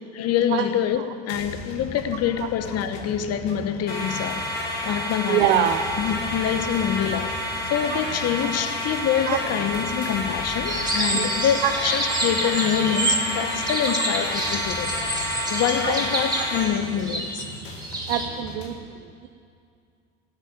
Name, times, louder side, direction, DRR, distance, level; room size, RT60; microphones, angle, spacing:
voice 1, 0.1-4.6 4.8-5.7 6.0-7.3 7.7-14.9 15.5-17.5, left 9 dB, 50° left, 1.1 m, -26 dB
sound 1, 1.3-18.7, left 1 dB, 80° left, 2.1 m, -40 dB
sound 2, 3.9-16.6, left 1 dB, 30° left, 4.2 m, -30 dB
voice 2, 5.3-5.8 7.9-8.0 8.4-8.5 9.3-9.4 11.1-11.3 11.6-11.7 15.8-16.0 16.4-16.5 18.1-19.3, right 12 dB, 75° right, 0.8 m, -24 dB
sound 3, 10.6-18.3, right 1 dB, 15° right, 2.6 m, -28 dB
16.5 x 7.4 x 8.6 m
hypercardioid pair, 70°, 32 cm